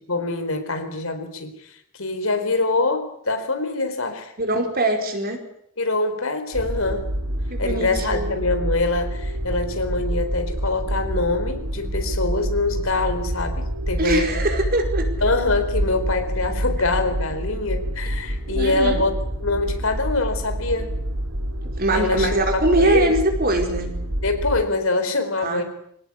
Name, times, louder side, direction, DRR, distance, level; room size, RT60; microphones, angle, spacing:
voice 1, 0.0-4.3 5.8-7.1 7.6-14.3 15.2-19.1 19.4-20.9 21.9-22.3 22.8-23.1 24.2-25.6, left 3 dB, 80° left, 8 dB, 4.3 m, -24 dB
voice 2, 4.4-5.4 7.5-8.4 14.0-15.1 18.5-19.0 21.8-23.9 25.4-25.6, right 1 dB, 45° right, 3 dB, 4.9 m, -22 dB
sound 1, 6.5-24.6, equal, 85° right, 2.8 m, -27 dB
25.5 x 17.5 x 9.8 m, 0.73 s
head